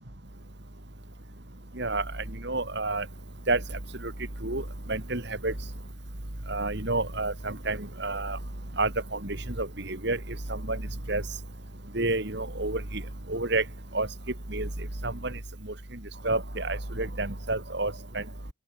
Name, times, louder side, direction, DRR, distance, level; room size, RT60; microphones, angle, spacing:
voice 1, 2.4-3.0 3.5-3.6 4.0-4.1 4.4-4.6 4.9-5.5 6.5-8.4 8.8-8.9 9.2-10.2 10.5-10.8 11.1-11.2 11.9-12.8 13.3-13.6 13.9-14.1 14.5-14.7 15.0-15.3 16.2-18.2, right 2 dB, 55° right, 2.8 m, -29 dB
open air
head